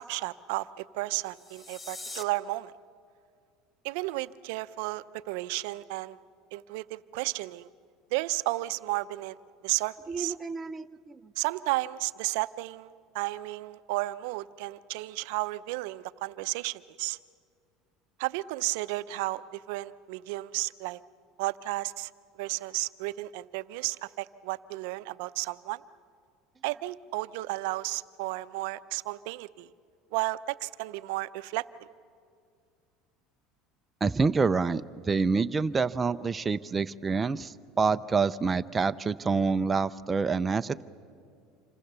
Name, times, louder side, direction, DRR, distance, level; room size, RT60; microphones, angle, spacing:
voice 1, 0.0-2.7 3.8-6.2 6.5-7.7 8.1-9.4 9.6-10.3 11.4-17.2 18.2-21.0 21.4-22.1 22.4-25.8 26.6-29.7 30.1-31.7, right 19 dB, 75° right, 15 dB, 0.6 m, -33 dB
sound 1, 1.3-2.2, left 2 dB, 25° left, 1.5 m, -42 dB
voice 2, 10.1-11.3 34.0-40.8, right 4 dB, 20° right, 10 dB, 0.5 m, -27 dB
27.0 x 26.0 x 6.8 m, 2.2 s
supercardioid pair, 105°, 0 cm